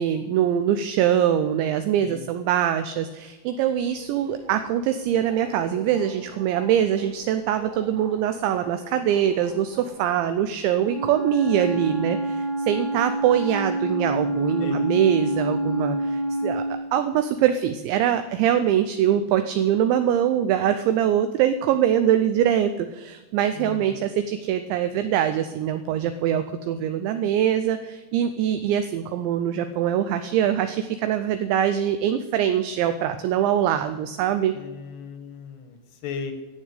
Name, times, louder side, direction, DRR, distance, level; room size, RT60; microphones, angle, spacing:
voice 1, 0.0-16.6 16.9-34.5, right 10 dB, 85° right, 9 dB, 2.6 m, -23 dB
Subway metro underground, 3.6-10.4, right 3 dB, 65° right, 4.1 m, -45 dB
Wind instrument woodwind instrument, 10.8-16.8, right 1 dB, 45° right, 3.1 m, -27 dB
voice 2, 14.6-14.9 23.5-24.1 34.6-36.3, left 6 dB, 70° left, 7 dB, 2.6 m, -36 dB
11.5 x 7.3 x 8.2 m, 1.2 s
omnidirectional pair, 5.9 m